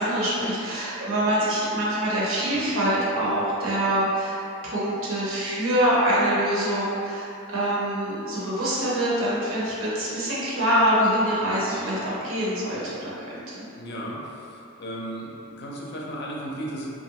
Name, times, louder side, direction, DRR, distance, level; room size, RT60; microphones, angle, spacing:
voice 1, 0.0-13.6, equal, 70° right, -7 dB, 0.8 m, -25 dB
voice 2, 13.8-14.2 14.8-16.9, right 1 dB, 50° left, -4 dB, 0.5 m, -34 dB
3.0 x 2.5 x 2.8 m, 2.7 s
head